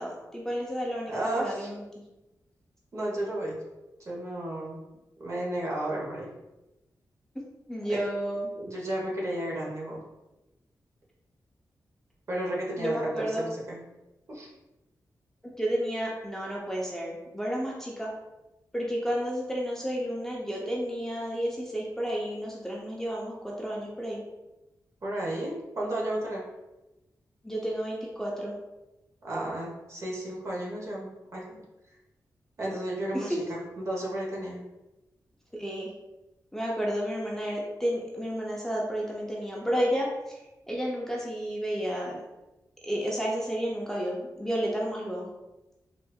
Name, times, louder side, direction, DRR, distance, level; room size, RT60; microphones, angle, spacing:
voice 1, 0.0-1.8 7.7-8.5 12.8-13.5 15.4-18.1 18.7-24.2 27.4-28.5 33.1-33.3 35.5-35.9 36.5-40.1 40.7-42.2 42.8-45.3, equal, 5° left, -3 dB, 0.6 m, -31 dB
voice 2, 1.1-1.7 2.9-3.6 4.0-4.8 5.2-6.3 7.9-8.0 8.6-10.0 12.3-13.8 14.3-14.5 25.0-26.4 29.2-31.6 32.6-34.7, right 1 dB, 45° right, -4 dB, 1.1 m, -33 dB
4.1 x 2.5 x 2.3 m, 1.0 s
cardioid pair, 75°, 7 cm